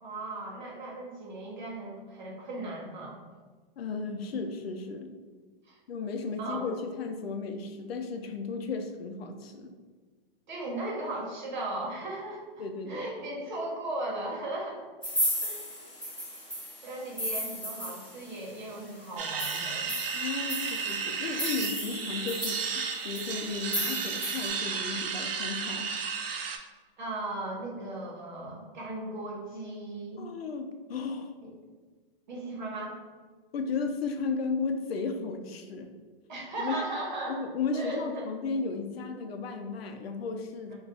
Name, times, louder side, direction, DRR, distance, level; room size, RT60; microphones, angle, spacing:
voice 1, 0.0-3.2 5.6-5.8 6.4-6.7 10.5-14.8 15.4-15.8 16.8-19.9 27.0-30.3 31.4-31.5 32.3-33.0 36.3-37.4 37.7-38.3, right 2 dB, 50° right, -3 dB, 0.9 m, -37 dB
voice 2, 3.8-5.2 5.9-9.7 12.6-13.1 20.1-25.9 30.2-31.3 33.5-35.9 36.6-36.8 37.3-40.7, left 4 dB, 85° left, 5 dB, 0.5 m, -34 dB
sound 1, 15.0-18.5 18.8-18.9 19.2-24.5, equal, 5° left, 0.7 m, -35 dB
sound 2, 19.2-26.6, right 5 dB, 75° right, 0.5 m, -33 dB
2.3 x 2.3 x 3.8 m, 1.4 s
hypercardioid pair, 175°, 29 cm